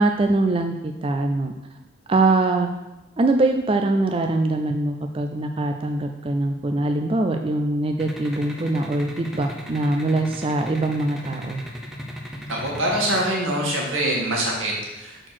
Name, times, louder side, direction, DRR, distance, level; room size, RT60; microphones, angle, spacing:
voice 1, 0.0-1.5 2.1-2.7 3.2-11.6, right 2 dB, 25° right, 5 dB, 0.3 m, -22 dB
sound 1, 8.0-13.3, equal, ahead, 0.7 m, -37 dB
voice 2, 12.5-15.3, right 1 dB, 90° right, -2 dB, 2.0 m, -24 dB
6.3 x 4.5 x 5.9 m, 1.0 s
head